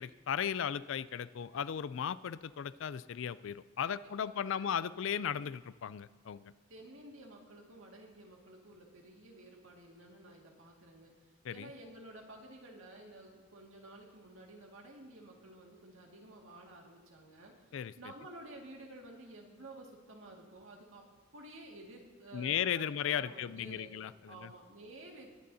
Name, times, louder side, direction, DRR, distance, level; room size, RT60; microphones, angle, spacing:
voice 1, 0.0-6.5 11.4-11.7 17.7-17.9 22.3-24.5, left 8 dB, 75° left, 16 dB, 0.4 m, -36 dB
voice 2, 3.9-4.8 6.7-21.0 21.3-22.9 23.2-23.9 24.3-25.3, right 2 dB, 90° right, 0 dB, 2.0 m, -52 dB
21.5 x 10.5 x 2.8 m, 1.4 s
head